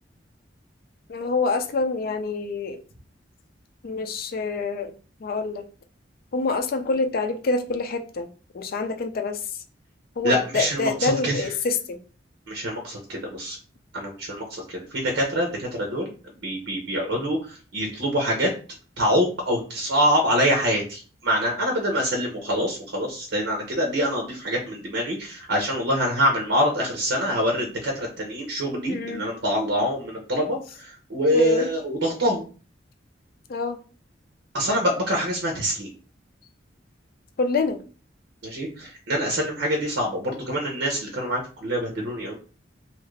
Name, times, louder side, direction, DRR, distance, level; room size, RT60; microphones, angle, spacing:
voice 1, 1.1-2.8 3.8-4.9 5.2-5.6 6.3-8.3 8.5-9.4 10.2-12.0 28.9-29.3 31.3-31.7 33.5-33.8 37.4-37.8, left 3 dB, 55° left, 0.4 m, -26 dB
voice 2, 10.2-11.5 12.5-13.6 13.9-16.1 16.4-18.5 19.0-32.5 34.5-35.9 38.4-42.4, equal, 80° right, 0.7 m, -25 dB
2.8 x 2.4 x 3.1 m
head